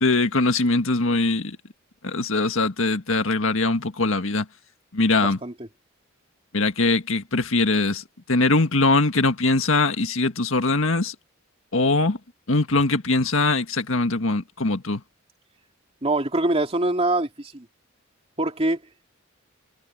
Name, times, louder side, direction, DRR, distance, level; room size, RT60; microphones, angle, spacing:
voice 1, 0.0-1.6 2.0-4.5 4.9-5.4 6.5-11.2 11.7-12.2 12.5-15.0, left 3 dB, 70° left, 1.8 m, -22 dB
voice 2, 5.2-5.7 16.0-17.7 18.4-18.8, right 2 dB, 30° right, 2.8 m, -24 dB
head